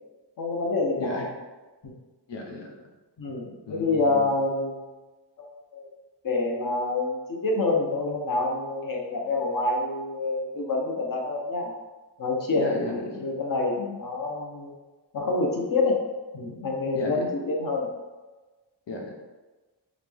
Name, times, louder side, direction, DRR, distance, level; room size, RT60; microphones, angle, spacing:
voice 1, 0.4-1.2 3.2-4.9 5.4-5.9 6.2-11.7 12.2-14.7 15.1-16.0 16.3-17.9, left 3 dB, 55° left, -1 dB, 0.8 m, -27 dB
voice 2, 1.0-1.3 2.3-2.7 3.7-4.3 12.5-13.1 16.9-17.2 18.9-19.1, left 2 dB, 90° left, 1 dB, 0.9 m, -33 dB
3.9 x 3.0 x 3.4 m, 1.2 s
wide cardioid pair, 135°, 41 cm